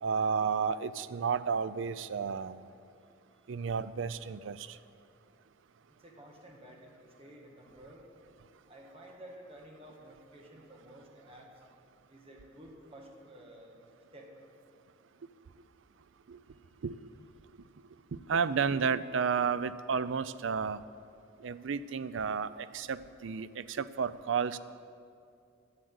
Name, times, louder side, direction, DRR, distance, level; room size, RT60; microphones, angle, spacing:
voice 1, 0.0-2.7 3.5-4.8 16.3-16.4 16.8-17.0 18.1-20.8 21.4-24.6, right 6 dB, 75° right, 15 dB, 0.4 m, -32 dB
voice 2, 5.9-8.1 8.7-11.5 12.1-13.8 14.1-14.3 16.5-16.8, right 1 dB, 30° right, 0 dB, 1.7 m, -52 dB
11.5 x 7.9 x 7.9 m, 2.4 s
head